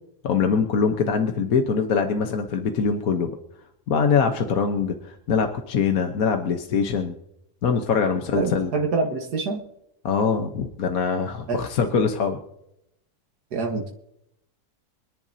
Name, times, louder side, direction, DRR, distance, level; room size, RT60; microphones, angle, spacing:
voice 1, 0.2-3.3 3.9-7.1 7.6-8.7 10.0-12.4, left 6 dB, 65° left, 5 dB, 1.4 m, -23 dB
voice 2, 8.4-9.6 11.5-11.6 13.5-13.9, right 4 dB, 85° right, 1 dB, 2.0 m, -26 dB
26.5 x 10.5 x 2.8 m, 0.79 s
omnidirectional pair, 1.6 m